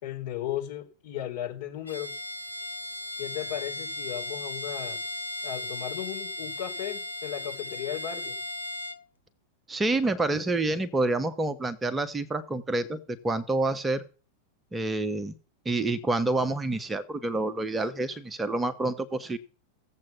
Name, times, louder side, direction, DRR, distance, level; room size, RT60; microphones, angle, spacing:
voice 1, 0.0-2.1 3.2-5.0 5.4-8.4, left 11 dB, 50° left, 0 dB, 4.2 m, -35 dB
Bowed string instrument, 1.9-9.0, left 2 dB, 80° left, 0.9 m, -36 dB
voice 2, 9.7-14.0 14.7-15.3 15.6-19.4, right 2 dB, 15° right, 11 dB, 0.9 m, -28 dB
16.0 x 7.6 x 5.9 m, 0.37 s
figure-of-eight pair, 90°, 0 cm